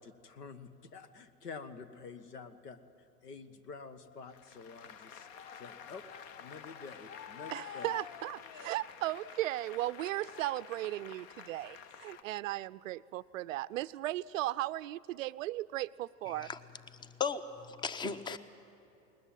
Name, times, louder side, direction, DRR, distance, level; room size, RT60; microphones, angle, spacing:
voice 1, 0.0-2.8 3.2-6.0 6.4-7.9, left 5 dB, 75° left, 13 dB, 1.5 m, -48 dB
Applause, 4.3-12.2, left 7 dB, 40° left, 1.0 m, -49 dB
voice 2, 7.5-16.5, right 16 dB, 55° right, 16 dB, 0.5 m, -36 dB
voice 3, 17.0-18.4, left 5 dB, 10° left, 14 dB, 0.7 m, -36 dB
20.5 x 20.0 x 9.1 m, 2.9 s
hypercardioid pair, 100°, 48 cm